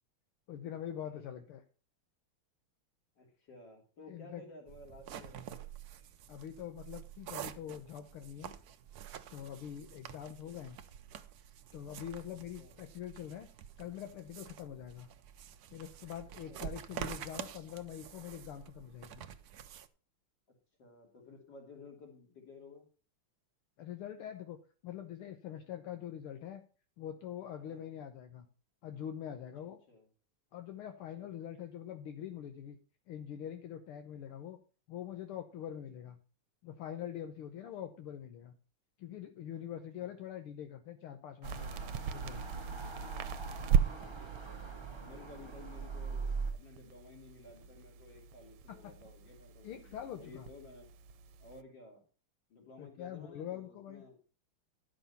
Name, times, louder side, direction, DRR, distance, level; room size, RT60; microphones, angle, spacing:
voice 1, 0.5-1.6 4.1-4.4 6.3-8.6 9.3-10.8 11.7-13.5 13.8-15.1 15.7-19.3 23.8-24.6 24.8-26.6 27.0-28.5 28.8-29.8 30.5-32.8 33.1-34.6 34.9-36.2 36.6-38.6 39.0-41.7 42.1-42.5 48.8-48.9 49.6-50.5 52.8-54.0, left 10 dB, 75° left, 6 dB, 1.8 m, -44 dB
voice 2, 3.2-5.6 10.5-10.6 12.6-12.8 16.4-16.7 20.8-22.9 27.7-27.9 29.9-30.1 31.2-31.3 37.8-37.9 40.0-40.2 43.6-50.9 51.4-52.0 52.5-54.2, left 3 dB, 55° left, 0 dB, 3.6 m, -55 dB
sound 1, 4.7-19.9, right 9 dB, 65° right, 1.0 m, -48 dB
sound 2, 41.4-46.5, right 4 dB, 20° right, 0.7 m, -42 dB
sound 3, 41.4-51.6, right 8 dB, 90° right, 1.6 m, -38 dB
11.0 x 6.1 x 5.5 m, 0.37 s
omnidirectional pair, 2.4 m